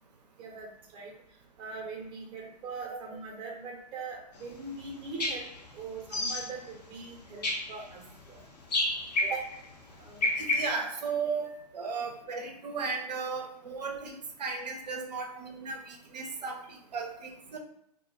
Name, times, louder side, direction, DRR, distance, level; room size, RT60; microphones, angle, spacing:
voice 1, 0.4-1.1 1.6-5.5 5.7-8.4 9.2-9.5 10.0-10.3 11.5-11.6 15.4-15.5, right 4 dB, 25° right, 1 dB, 0.6 m, -41 dB
sound 1, 4.9-5.0 5.2-5.6 6.0-6.6 7.4-7.8 8.7-9.6 10.1-10.7, left 2 dB, 75° left, 0.7 m, -29 dB
voice 2, 10.4-11.5 11.7-16.6 16.9-17.6, right 4 dB, 75° right, 2 dB, 0.5 m, -35 dB
2.2 x 2.2 x 2.9 m, 0.75 s
hypercardioid pair, 120°, 21 cm